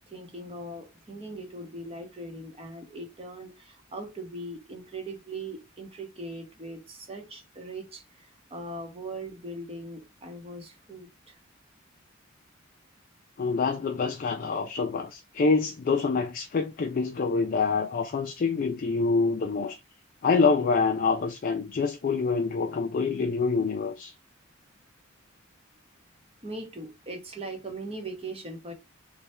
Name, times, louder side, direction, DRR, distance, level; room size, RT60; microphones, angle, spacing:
voice 1, 0.1-11.4 26.4-28.7, right 2 dB, 30° right, 0.8 m, -40 dB
voice 2, 13.4-19.8 20.2-24.1, left 4 dB, 45° left, 0.4 m, -26 dB
3.2 x 2.2 x 4.2 m
head